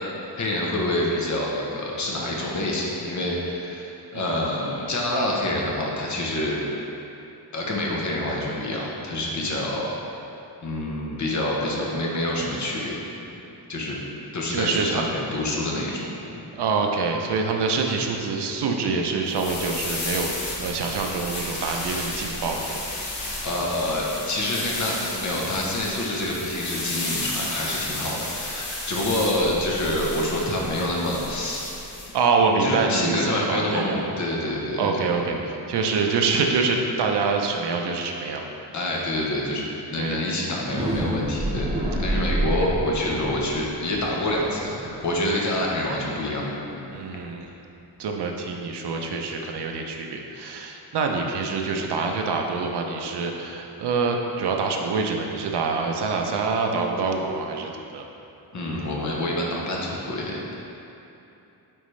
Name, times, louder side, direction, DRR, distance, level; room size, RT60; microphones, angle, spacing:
voice 1, 0.2-6.6 7.5-9.9 10.6-13.3 13.7-14.0 14.3-16.0 16.3-16.4 23.4-31.7 32.6-35.0 35.3-35.4 38.7-46.8 58.5-60.6, left 1 dB, 45° left, -2 dB, 1.0 m, -27 dB
voice 2, 14.5-15.0 16.6-22.8 32.1-34.1 34.8-38.5 40.0-40.2 41.4-41.7 46.9-47.5 48.0-58.1, right 4 dB, 80° right, 2 dB, 0.7 m, -26 dB
sound 1, 19.3-32.1, left 2 dB, 75° left, 1.3 m, -33 dB
sound 2, 40.5-46.3, right 1 dB, 15° right, 0.8 m, -29 dB
9.0 x 4.1 x 3.2 m, 2.9 s
wide cardioid pair, 170°, 40 cm